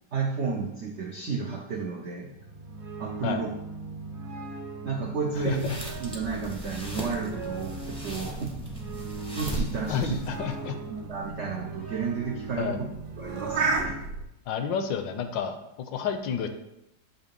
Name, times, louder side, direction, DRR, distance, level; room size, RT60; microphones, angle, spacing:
voice 1, 0.1-2.3 3.0-3.5 4.8-5.7 6.0-8.5 9.3-10.2 10.9-12.8 13.2-13.9, right 5 dB, 85° right, 0 dB, 0.6 m, -32 dB
sound 1, 2.2-14.0, right 3 dB, 50° right, 0.9 m, -39 dB
sound 2, 5.3-10.6, right 1 dB, 5° left, 0.5 m, -38 dB
sound 3, 9.0-14.3, right 4 dB, 65° right, 1.3 m, -34 dB
voice 2, 9.9-10.7 12.6-12.8 14.5-16.5, left 7 dB, 80° left, 8 dB, 1.3 m, -30 dB
6.7 x 2.8 x 5.2 m, 0.85 s
omnidirectional pair, 2.0 m